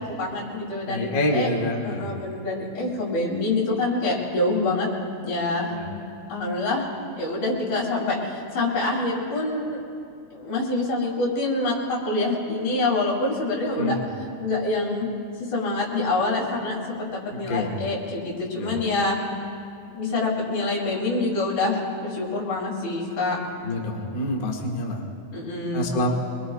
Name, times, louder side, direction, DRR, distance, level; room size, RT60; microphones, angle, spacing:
voice 1, 0.0-1.1 1.3-1.5 1.8-4.9 5.2-5.7 6.3-6.9 7.2-9.8 10.3-14.0 14.4-15.1 15.5-19.2 19.9-23.4 25.3-25.9, left 2 dB, 85° left, -6 dB, 4.7 m, -26 dB
voice 2, 0.8-2.1 5.7-5.9 13.8-14.0 17.3-17.8 18.5-18.9 23.6-25.0 25.7-26.1, left 1 dB, 50° left, 0 dB, 1.1 m, -27 dB
25.5 x 22.0 x 2.4 m, 2.5 s
omnidirectional pair, 4.0 m